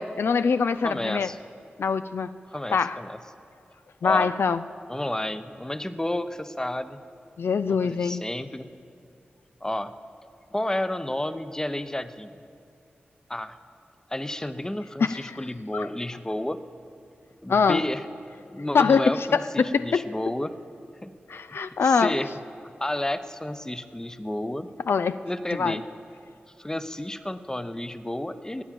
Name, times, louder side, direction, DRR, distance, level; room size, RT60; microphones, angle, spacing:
voice 1, 0.0-1.3 1.8-2.3 2.7-3.0 4.0-4.6 7.4-8.2 15.0-15.4 15.7-15.9 17.5-17.8 18.7-20.0 21.3-22.2 24.9-25.2 25.6-25.8, left 5 dB, 75° left, 12 dB, 0.3 m, -23 dB
voice 2, 0.8-1.4 2.5-3.2 4.0-4.3 4.9-7.0 7.7-8.7 9.6-9.9 10.5-12.3 13.3-13.6 14.1-16.6 17.4-18.1 18.5-20.5 21.0-21.1 21.5-22.3 22.8-24.7 25.2-25.8 26.6-28.6, left 1 dB, 15° left, 11 dB, 0.7 m, -31 dB
19.0 x 8.8 x 7.7 m, 2.5 s
cardioid pair, 40°, 4 cm